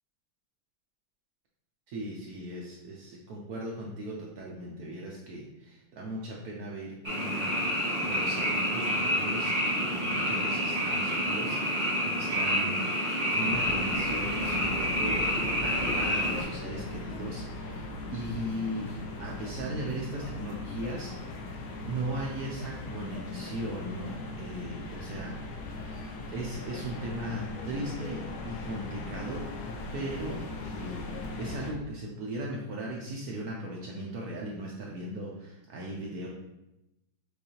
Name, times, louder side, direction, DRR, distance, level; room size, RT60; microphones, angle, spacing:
voice 1, 1.9-7.5 8.0-11.6 12.1-15.4 15.6-17.8 18.1-21.1 21.8-25.3 25.8-29.4 29.9-30.4 30.6-31.1 31.4-36.3, right 1 dB, 80° right, -3 dB, 0.8 m, -38 dB
Frog, 7.0-16.4, equal, 30° right, 0.9 m, -28 dB
sound 1, 13.5-31.7, left 2 dB, 80° left, 1.5 m, -39 dB
6.4 x 2.6 x 2.8 m, 0.92 s
omnidirectional pair, 2.3 m